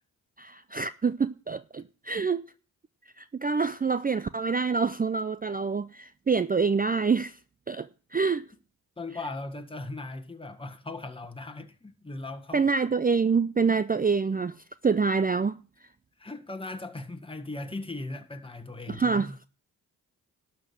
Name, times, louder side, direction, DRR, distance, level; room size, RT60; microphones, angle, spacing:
voice 1, 0.4-2.4 3.2-7.4 7.7-8.4 12.5-14.5 14.8-15.6 18.9-19.5, right 5 dB, 20° right, 0.5 m, -26 dB
voice 2, 9.0-12.6 16.2-19.4, left 2 dB, 10° left, 1.6 m, -38 dB
12.0 x 6.0 x 7.8 m
supercardioid pair, 40°, 42 cm